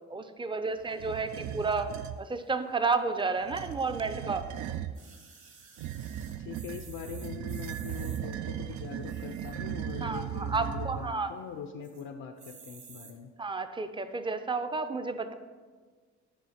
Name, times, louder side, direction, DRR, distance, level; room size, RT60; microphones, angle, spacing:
voice 1, 0.1-1.9 2.2-4.4 10.0-11.3 13.4-15.3, right 4 dB, 15° right, 9 dB, 0.5 m, -31 dB
sound 1, 0.9-2.2 3.4-5.0 5.8-11.3, right 10 dB, 70° right, 0.5 m, -37 dB
sound 2, 4.9-8.2 9.0-9.7 10.2-10.3 10.4-10.5 10.9-11.3 11.8-12.0 12.4-13.1 13.8-13.9, right 5 dB, 45° right, 1.4 m, -52 dB
voice 2, 6.4-13.3, left 7 dB, 70° left, 6 dB, 0.6 m, -42 dB
9.4 x 3.4 x 5.7 m, 1.5 s
cardioid pair, 90°, 30 cm